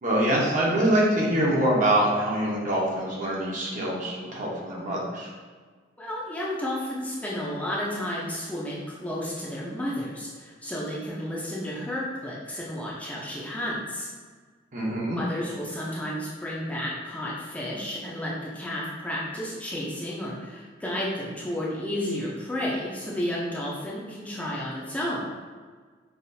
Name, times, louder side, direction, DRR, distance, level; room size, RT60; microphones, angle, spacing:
voice 1, 0.0-5.3 14.7-15.2, right 1 dB, 45° right, -4 dB, 0.9 m, -24 dB
voice 2, 6.0-14.1 15.1-25.2, left 1 dB, 10° left, -6 dB, 0.5 m, -32 dB
5.6 x 2.4 x 2.6 m, 1.5 s
head